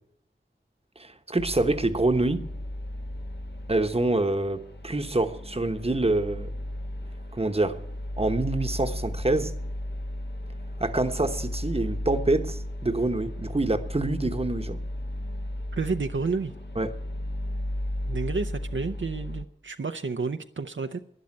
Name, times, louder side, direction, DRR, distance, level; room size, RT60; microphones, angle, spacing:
voice 1, 1.0-2.5 3.7-6.5 7.3-7.8 8.2-9.5 10.8-14.8 16.8-17.0, right 2 dB, 30° right, 1.1 m, -26 dB
sound 1, 1.4-19.4, left 1 dB, 60° left, 1.3 m, -35 dB
voice 2, 15.7-16.5 18.1-21.0, right 4 dB, 70° right, 0.7 m, -30 dB
12.0 x 10.5 x 8.5 m
wide cardioid pair, 55°, 20 cm